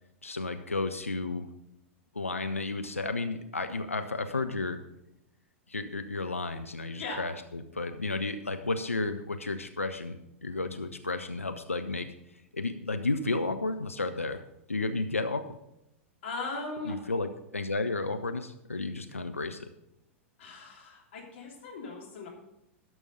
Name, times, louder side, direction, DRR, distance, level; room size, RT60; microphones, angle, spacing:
voice 1, 0.2-1.5 2.1-4.8 5.7-12.1 12.5-14.4 14.7-15.5 16.9-19.7, left 3 dB, 85° left, 8 dB, 0.6 m, -32 dB
voice 2, 16.2-17.0 20.4-22.3, left 3 dB, 60° left, -1 dB, 3.2 m, -38 dB
12.0 x 6.3 x 5.4 m, 0.84 s
figure-of-eight pair, 95°, 7 cm